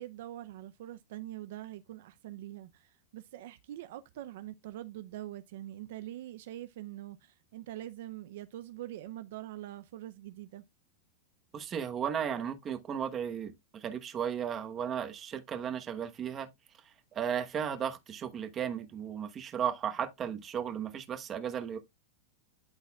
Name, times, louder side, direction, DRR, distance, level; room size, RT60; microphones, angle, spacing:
voice 1, 0.0-10.6, right 14 dB, 70° right, 0.5 m, -44 dB
voice 2, 11.5-16.5 17.1-21.8, right 8 dB, 25° right, 1.1 m, -35 dB
12.0 x 4.1 x 2.3 m
supercardioid pair, 145°, 0 cm